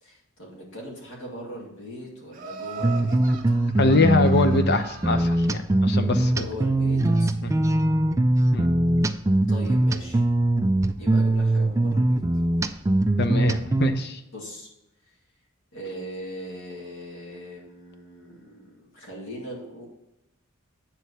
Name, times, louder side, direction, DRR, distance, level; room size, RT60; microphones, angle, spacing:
voice 1, 0.0-3.2 6.3-7.4 9.5-10.2 11.0-12.2 14.3-14.7 15.7-19.9, equal, 70° left, -4 dB, 2.4 m, -39 dB
Laughter, 2.3-5.5, right 5 dB, 40° right, 1.4 m, -40 dB
sound 1, 2.8-13.9, right 1 dB, 15° right, 0.3 m, -22 dB
voice 2, 3.8-6.5 7.4-7.5 8.5-8.7 13.2-14.2, left 3 dB, 50° left, 8 dB, 0.7 m, -23 dB
9.1 x 4.1 x 6.8 m, 0.94 s
head